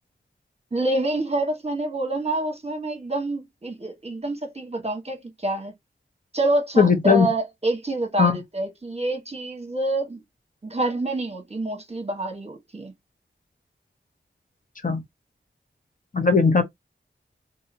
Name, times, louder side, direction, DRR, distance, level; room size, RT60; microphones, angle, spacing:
voice 1, 0.7-5.7 6.3-10.2 10.6-12.9, right 2 dB, 30° right, 1.0 m, -27 dB
voice 2, 6.8-7.3 8.2-8.4 14.8-15.0 16.1-16.6, left 5 dB, 40° left, 0.8 m, -18 dB
2.8 x 2.7 x 2.6 m
wide cardioid pair, 50°, 20 cm